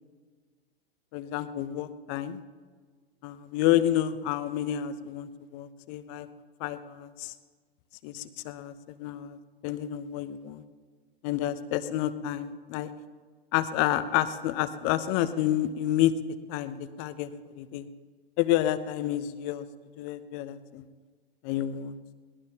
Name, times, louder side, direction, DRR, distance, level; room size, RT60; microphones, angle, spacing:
voice 1, 1.1-2.4 3.2-6.3 6.6-7.3 8.0-8.7 9.0-9.4 9.6-10.6 11.2-12.9 13.5-16.1 16.5-17.3 17.6-17.9 18.4-19.6 20.0-20.8 21.4-22.0, left 12 dB, 35° left, 13 dB, 0.9 m, -29 dB
22.0 x 18.0 x 2.9 m, 1.5 s
figure-of-eight pair, 110°, 31 cm